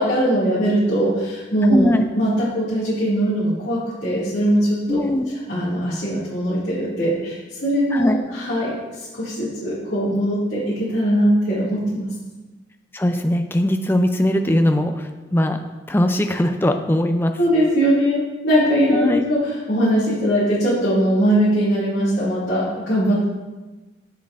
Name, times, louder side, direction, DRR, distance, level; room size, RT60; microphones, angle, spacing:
voice 1, 0.0-5.0 5.5-12.1 17.4-23.2, equal, 70° left, -11 dB, 2.1 m, -20 dB
voice 2, 1.7-2.1 4.9-5.2 7.9-8.2 12.9-15.6 15.9-17.3 18.9-19.2, left 1 dB, 10° left, 6 dB, 0.3 m, -20 dB
7.4 x 7.1 x 2.4 m, 1.2 s
head